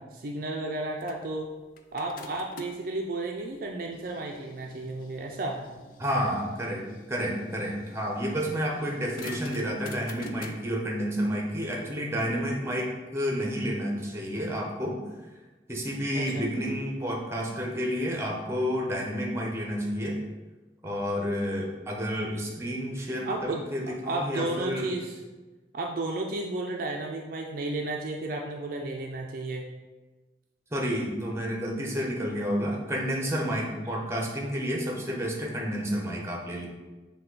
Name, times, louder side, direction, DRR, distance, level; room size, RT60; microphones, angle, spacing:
voice 1, 0.1-1.5 1.9-5.6 16.2-16.4 23.2-25.2 25.7-29.7, right 2 dB, 50° right, 1 dB, 0.4 m, -33 dB
sound 1, 1.0-2.9 3.5-10.5, left 3 dB, 50° left, 0.3 m, -47 dB
voice 2, 6.0-15.0 15.7-20.2 20.8-24.9 30.7-36.7, equal, 15° right, -1 dB, 0.7 m, -30 dB
5.5 x 2.3 x 3.8 m, 1.2 s
head